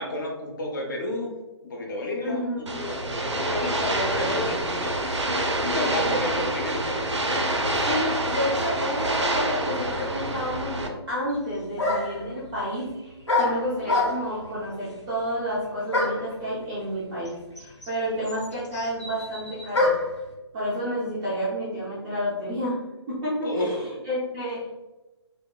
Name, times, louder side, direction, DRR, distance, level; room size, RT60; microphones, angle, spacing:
voice 1, 0.0-1.3 1.6-2.4 2.8-4.9 5.6-6.9 23.4-23.7, left 1 dB, 45° left, -1 dB, 0.6 m, -31 dB
voice 2, 2.2-2.8 5.9-6.2 7.8-19.9 20.5-22.8 23.1-24.7, equal, 10° right, -8 dB, 0.3 m, -30 dB
sound 1, 2.7-10.9, right 1 dB, 85° right, 0.4 m, -27 dB
sound 2, 11.3-11.4 11.8-12.3 13.3-14.4 15.9-16.3 17.3-17.4 17.6-20.2, left 2 dB, 85° left, 0.9 m, -25 dB
2.9 x 2.1 x 2.2 m, 1.1 s
figure-of-eight pair, 135°, 15 cm